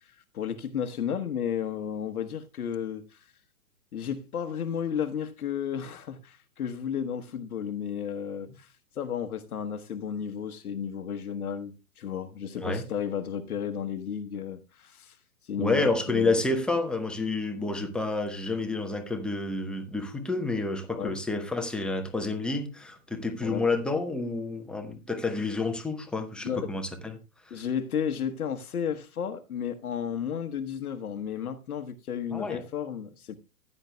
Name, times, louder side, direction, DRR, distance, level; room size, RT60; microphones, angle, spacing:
voice 1, 0.3-3.2 3.9-8.7 8.9-15.2 15.4-16.4 20.9-21.2 23.4-23.7 26.4-26.7 27.5-33.4, left 8 dB, 65° left, 1.2 m, -33 dB
voice 2, 15.6-27.2 27.4-27.6 32.3-32.6, left 3 dB, ahead, 0.8 m, -29 dB
15.0 x 9.8 x 2.2 m
hypercardioid pair, 125°, 47 cm